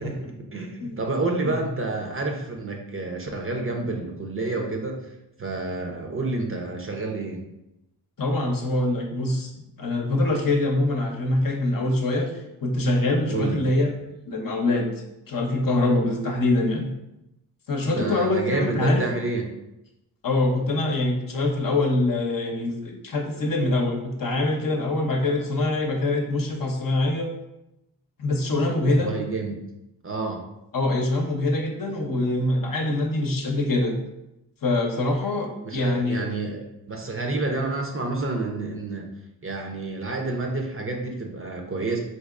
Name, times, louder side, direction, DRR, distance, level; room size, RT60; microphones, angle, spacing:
voice 1, 0.0-5.0 5.4-7.4 13.3-13.6 17.9-19.4 28.8-29.6 30.0-30.4 35.6-39.1 39.4-42.0, right 3 dB, 30° right, 2 dB, 0.6 m, -29 dB
voice 2, 8.2-9.5 9.8-12.3 12.6-13.9 14.2-14.9 15.3-16.9 17.7-19.0 20.2-27.3 28.2-29.1 30.7-34.0 34.6-36.3, left 2 dB, 50° left, 1 dB, 0.8 m, -24 dB
4.1 x 2.8 x 2.5 m, 0.89 s
cardioid pair, 55°, 42 cm